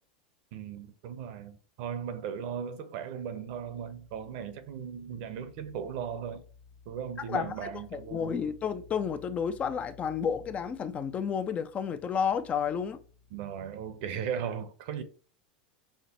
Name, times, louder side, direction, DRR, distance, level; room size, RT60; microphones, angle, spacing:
voice 1, 0.5-6.4 6.9-8.4 13.3-15.0, right 8 dB, 60° right, 0.7 m, -37 dB
sound 1, 3.4-13.4, left 5 dB, 65° left, 0.8 m, -56 dB
voice 2, 7.9-13.0, left 7 dB, 30° left, 0.4 m, -31 dB
5.7 x 2.1 x 2.9 m
hypercardioid pair, 105°, 5 cm